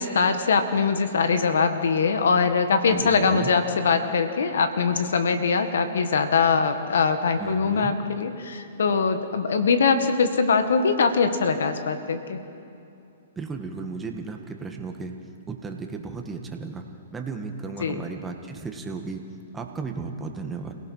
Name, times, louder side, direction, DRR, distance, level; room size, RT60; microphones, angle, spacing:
voice 1, 0.0-12.4 17.8-18.0, left 5 dB, 75° left, 8 dB, 1.8 m, -22 dB
voice 2, 2.9-3.5 7.4-7.9 13.4-15.1 15.5-16.8 17.1-19.2 19.5-20.7, right 4 dB, 15° right, 3 dB, 1.9 m, -34 dB
28.5 x 18.0 x 5.7 m, 2.7 s
hypercardioid pair, 130°, 0 cm